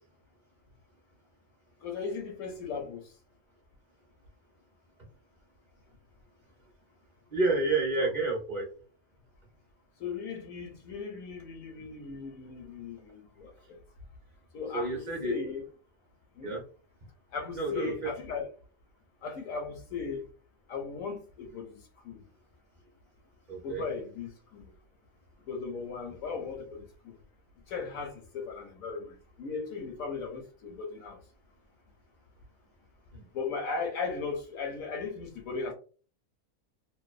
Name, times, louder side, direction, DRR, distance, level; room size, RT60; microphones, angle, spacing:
voice 1, 1.8-3.1 8.0-8.1 10.0-13.8 14.5-15.7 16.4-16.6 17.3-18.5 19.2-20.2 20.7-21.7 22.0-22.2 23.6-24.7 25.5-27.1 27.7-31.2 33.3-35.7, left 4 dB, 75° left, 0.9 m, -37 dB
voice 2, 7.3-8.7 14.7-15.4 16.4-16.6 17.5-18.1 23.5-23.8 33.1-33.3, right 3 dB, 40° right, 0.7 m, -29 dB
2.6 x 2.1 x 2.4 m
omnidirectional pair, 1.5 m